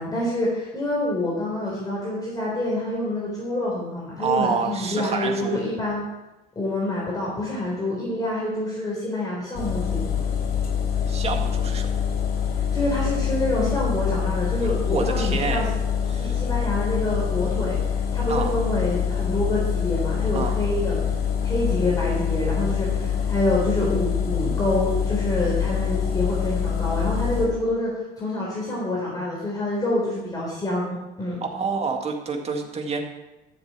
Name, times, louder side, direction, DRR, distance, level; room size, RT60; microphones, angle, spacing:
voice 1, 0.0-6.0 6.6-10.0 12.7-15.7 16.2-17.8 18.1-21.0 21.4-27.9 28.2-31.4, left 1 dB, 20° left, -5 dB, 3.8 m, -26 dB
voice 2, 4.2-5.6 11.1-11.9 14.6-15.7 16.1-16.4 18.3-18.5 20.3-20.5 31.5-33.0, right 5 dB, 35° right, 3 dB, 2.0 m, -28 dB
sound 1, 9.5-27.5, left 7 dB, 70° left, 3.8 m, -25 dB
13.5 x 7.3 x 6.0 m, 1.0 s
cardioid pair, 110°, 17 cm